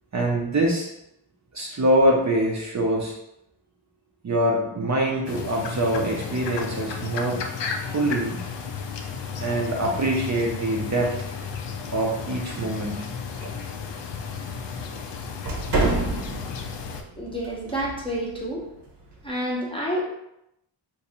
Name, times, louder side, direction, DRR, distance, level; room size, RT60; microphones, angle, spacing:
voice 1, 0.1-0.9 1.5-3.1 4.2-7.4 7.9-8.4 9.4-11.1 11.9-13.0, right 1 dB, 40° right, -2 dB, 0.5 m, -24 dB
sound 1, 5.3-17.0, left 6 dB, 70° left, 0.5 m, -34 dB
sound 2, 8.4-19.3, right 2 dB, 65° right, 0.9 m, -34 dB
voice 2, 17.2-18.6 19.2-20.0, equal, 10° left, -4 dB, 0.7 m, -29 dB
2.7 x 2.5 x 4.2 m, 0.83 s
wide cardioid pair, 140°, 45 cm